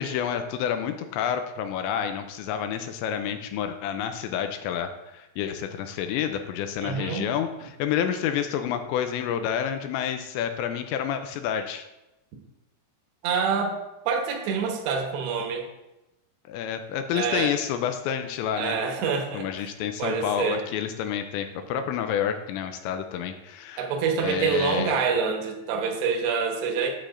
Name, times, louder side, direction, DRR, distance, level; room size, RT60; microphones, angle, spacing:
voice 1, 0.0-11.9 16.5-19.1 19.3-23.9 24.2-24.9, left 9 dB, 80° left, 7 dB, 2.7 m, -29 dB
voice 2, 6.8-7.3 13.2-13.8 14.1-15.7 17.1-17.5 18.6-19.7 20.0-20.6 23.8-26.9, right 5 dB, 75° right, 2 dB, 2.9 m, -26 dB
10.0 x 8.2 x 2.5 m, 0.95 s
omnidirectional pair, 5.4 m